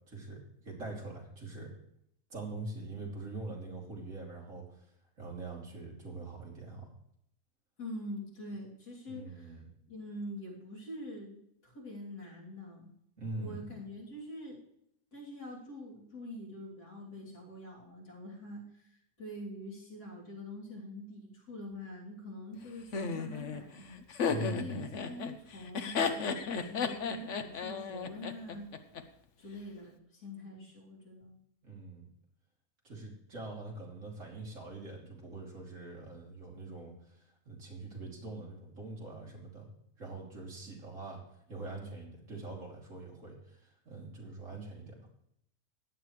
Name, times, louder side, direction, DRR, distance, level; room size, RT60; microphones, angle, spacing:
voice 1, 0.1-1.7 2.3-4.8 5.2-6.9 9.1-9.7 13.2-13.7 24.2-24.8 31.6-32.1 32.8-39.7 40.0-41.2 41.5-45.0, right 2 dB, 55° right, -2 dB, 3.4 m, -43 dB
voice 2, 7.8-9.6 9.9-12.9 13.4-14.6 15.1-23.8 24.3-28.7 29.4-31.4, left 1 dB, 90° left, -4 dB, 3.8 m, -45 dB
Laughter, 22.9-29.0, left 5 dB, 55° left, 1.1 m, -34 dB
15.5 x 10.0 x 3.2 m, 0.74 s
omnidirectional pair, 1.6 m